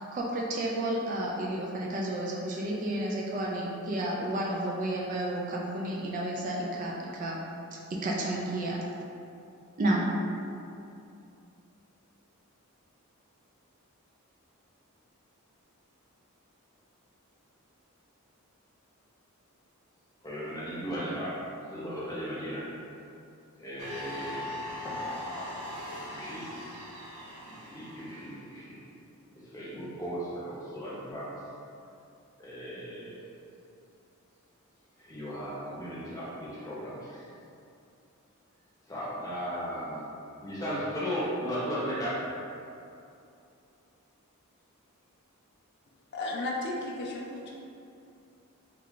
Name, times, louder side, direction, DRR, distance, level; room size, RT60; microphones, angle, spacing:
voice 1, 0.1-7.4 7.9-8.8 9.8-10.1, right 1 dB, 35° right, -3 dB, 0.3 m, -31 dB
voice 2, 20.2-21.4 21.7-22.6 23.6-24.5 24.8-25.0 26.1-26.5 27.4-28.8 29.3-31.4 32.4-33.2 35.0-37.2 38.9-42.2, equal, 15° left, -9 dB, 0.8 m, -36 dB
sound 1, 23.8-28.5, left 1 dB, 85° right, 0.6 m, -40 dB
voice 3, 46.1-47.5, left 2 dB, 50° left, -2 dB, 0.3 m, -34 dB
3.2 x 2.3 x 3.6 m, 2.6 s
head